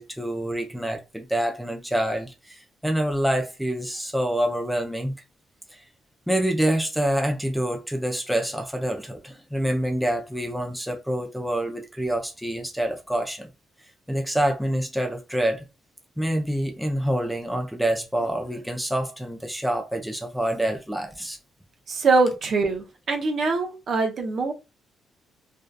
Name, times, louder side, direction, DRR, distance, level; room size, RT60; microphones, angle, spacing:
voice 1, 0.0-5.1 5.7-5.8 6.3-13.5 14.1-15.6 16.2-21.4, right 1 dB, ahead, 0.5 m, -26 dB
voice 2, 21.9-24.5, right 3 dB, 55° right, 0.7 m, -23 dB
2.6 x 2.2 x 2.2 m
cardioid pair, 90°, 0 cm